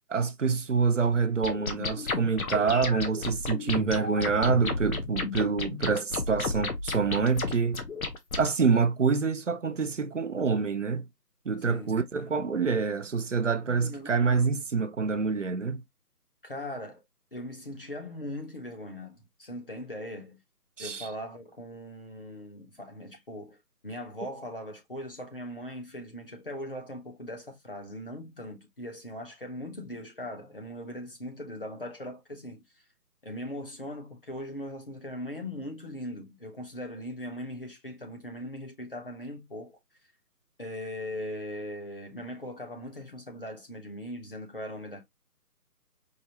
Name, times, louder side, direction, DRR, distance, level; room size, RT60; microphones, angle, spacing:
voice 1, 0.1-7.8 8.4-11.1 11.5-15.8 20.8-21.1, right 5 dB, 50° right, 0.6 m, -26 dB
sound 1, 1.4-8.5, left 3 dB, 60° left, 1.0 m, -33 dB
voice 2, 11.6-11.9 13.7-14.2 16.4-17.0 17.3-20.4 20.8-32.6 33.2-39.8 40.6-45.0, left 1 dB, 35° left, 0.8 m, -40 dB
4.8 x 2.5 x 2.8 m
figure-of-eight pair, 170°, 47 cm